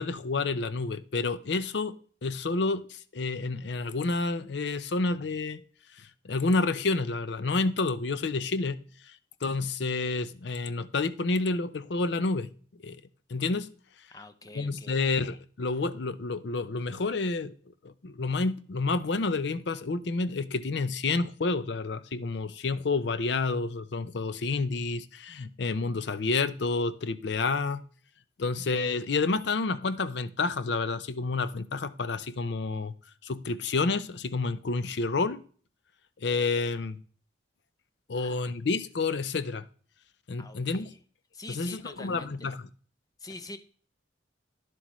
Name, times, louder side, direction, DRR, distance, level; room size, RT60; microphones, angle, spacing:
voice 1, 0.0-2.0 2.2-5.6 6.0-9.2 9.4-12.5 12.8-13.0 13.3-13.7 14.5-17.6 17.8-27.8 28.4-32.9 33.2-35.4 36.2-37.0 38.1-39.6 40.3-40.9 41.5-42.7, left 3 dB, 60° left, 0.5 m, -29 dB
voice 2, 14.1-15.0 38.1-38.5 40.4-41.0 41.3-42.3 43.2-43.6, left 2 dB, 20° left, 0.6 m, -45 dB
10.5 x 7.7 x 3.1 m
head